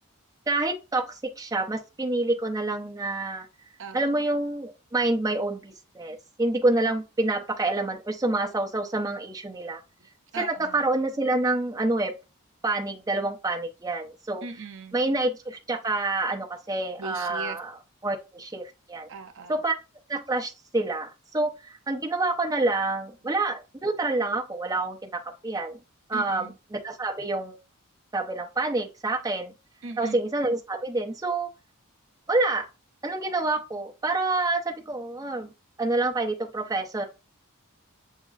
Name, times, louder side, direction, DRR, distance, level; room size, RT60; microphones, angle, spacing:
voice 1, 0.5-3.5 3.9-9.8 10.4-12.1 12.6-14.4 14.9-17.8 18.0-19.1 19.5-19.7 20.1-25.8 26.1-27.6 28.1-29.5 30.0-31.5 32.3-32.7 33.0-35.5 35.8-37.0, right 2 dB, 15° right, 0.6 m, -27 dB
voice 2, 10.3-10.9 14.4-15.0 17.0-17.6 19.1-19.6 26.1-26.6 29.8-30.2, right 4 dB, 60° right, 0.6 m, -39 dB
7.1 x 2.8 x 2.4 m
head